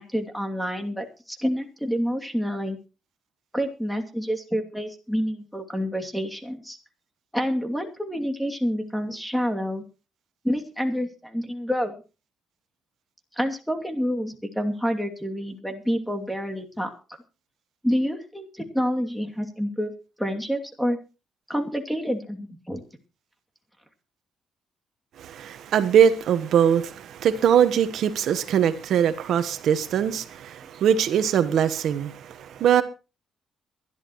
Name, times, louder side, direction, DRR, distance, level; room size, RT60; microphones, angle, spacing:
voice 1, 0.0-2.8 3.5-6.8 7.3-9.8 10.4-11.9 13.4-17.0 17.8-19.9 20.2-21.0 21.5-22.8, equal, ahead, 2.6 m, -28 dB
voice 2, 25.2-32.8, right 8 dB, 70° right, 1.1 m, -22 dB
23.0 x 11.5 x 3.1 m
cardioid pair, 90°, 0 cm